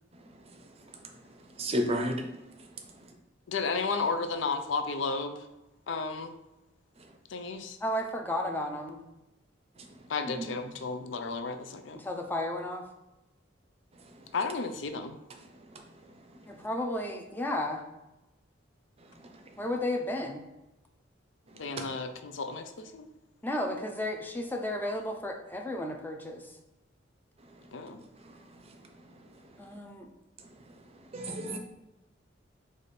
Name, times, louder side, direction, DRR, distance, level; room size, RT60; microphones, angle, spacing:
voice 1, 1.6-2.3 10.4-10.5 21.8-21.9 28.2-28.3 31.1-31.6, equal, 30° right, 4 dB, 0.6 m, -31 dB
voice 2, 3.5-5.5 5.9-6.3 7.3-7.8 10.1-12.0 14.3-15.2 21.5-23.1 27.7-28.0, left 4 dB, 70° left, 7 dB, 0.5 m, -33 dB
voice 3, 7.8-9.0 11.9-12.8 16.5-17.8 19.6-20.4 23.4-26.5 29.6-30.1 31.5-31.6, left 1 dB, 10° left, 2 dB, 0.5 m, -33 dB
4.9 x 2.5 x 4.1 m, 0.97 s
head